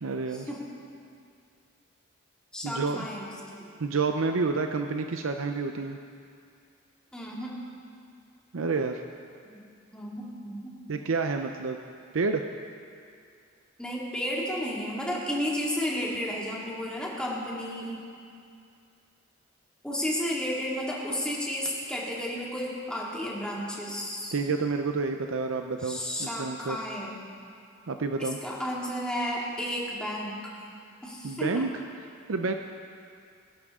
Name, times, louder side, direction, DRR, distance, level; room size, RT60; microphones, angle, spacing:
voice 1, 0.0-0.5 2.6-3.1 3.8-6.0 8.5-9.0 10.9-11.8 12.1-12.5 24.3-26.8 27.9-28.4 31.2-32.5, right 4 dB, 75° right, 5 dB, 0.6 m, -29 dB
voice 2, 2.5-3.7 7.1-7.5 9.9-10.7 13.8-18.0 19.8-24.3 25.8-27.1 28.2-30.4 31.0-31.7, equal, 5° left, -5 dB, 2.2 m, -32 dB
21.5 x 11.0 x 3.7 m, 2.4 s
head